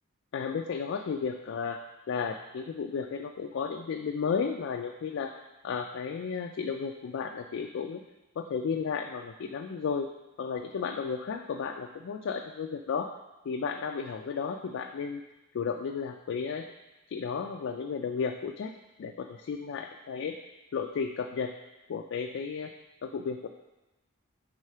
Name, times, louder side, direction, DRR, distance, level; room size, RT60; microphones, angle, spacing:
voice 1, 0.3-1.8 2.1-8.0 8.4-10.1 10.4-13.1 13.5-15.2 15.5-16.7 17.1-18.7 19.0-20.4 20.7-21.5 21.9-22.7 23.0-23.5, left 6 dB, 60° left, 4 dB, 0.3 m, -33 dB
4.8 x 3.7 x 5.5 m, 1.1 s
head